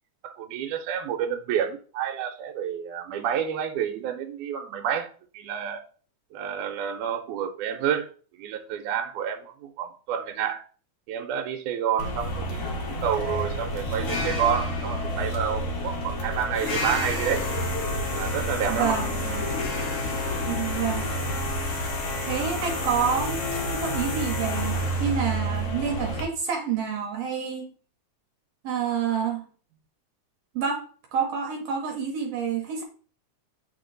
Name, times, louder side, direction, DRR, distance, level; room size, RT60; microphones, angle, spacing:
voice 1, 0.2-5.8 6.3-8.1 8.4-10.6 11.1-17.4 18.1-19.0, right 8 dB, 90° right, 3 dB, 2.1 m, -29 dB
sound 1, 12.0-26.2, left 1 dB, 55° left, 0.8 m, -29 dB
voice 2, 18.7-19.5 20.5-21.1 22.2-27.7 28.6-29.5 30.5-30.8 31.1-32.8, right 6 dB, 70° right, 2 dB, 1.7 m, -28 dB
8.3 x 3.7 x 3.8 m, 0.42 s
omnidirectional pair, 3.5 m